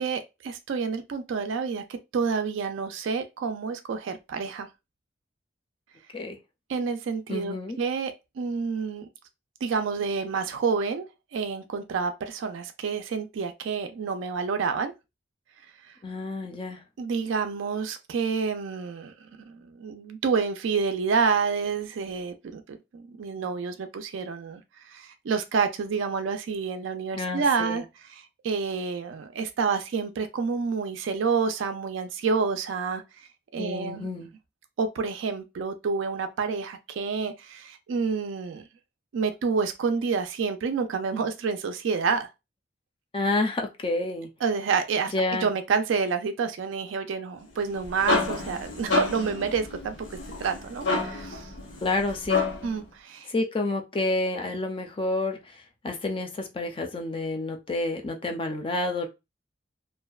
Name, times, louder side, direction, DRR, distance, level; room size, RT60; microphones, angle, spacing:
voice 1, 0.0-1.8 2.1-4.7 6.7-9.1 9.6-11.0 11.3-14.9 17.0-19.1 19.5-24.6 24.9-27.8 28.4-33.0 33.5-34.2 34.8-38.6 39.1-42.3 44.4-49.9 50.4-51.5 52.6-53.3, right 5 dB, 85° right, 0.4 m, -28 dB
voice 2, 7.3-7.8 16.0-16.8 27.1-27.8 33.6-34.3 43.1-44.3 45.1-45.5 51.8-52.5 53.3-55.4 55.8-59.1, left 2 dB, 30° left, 0.4 m, -29 dB
sound 1, 47.6-52.8, left 3 dB, 75° left, 0.8 m, -29 dB
2.6 x 2.1 x 2.3 m
head